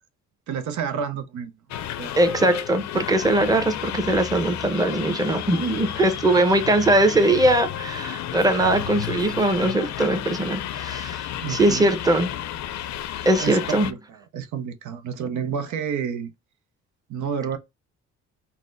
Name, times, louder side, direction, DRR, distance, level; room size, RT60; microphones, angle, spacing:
voice 1, 0.5-1.5 2.0-2.2 11.4-11.9 13.3-16.3 17.1-17.6, right 7 dB, 75° right, 0.7 m, -30 dB
sound 1, 1.7-13.9, left 11 dB, 65° left, 0.6 m, -32 dB
voice 2, 2.2-12.3 13.2-13.9, right 1 dB, 10° right, 0.8 m, -21 dB
4.1 x 2.1 x 3.8 m
cardioid pair, 90°, 30 cm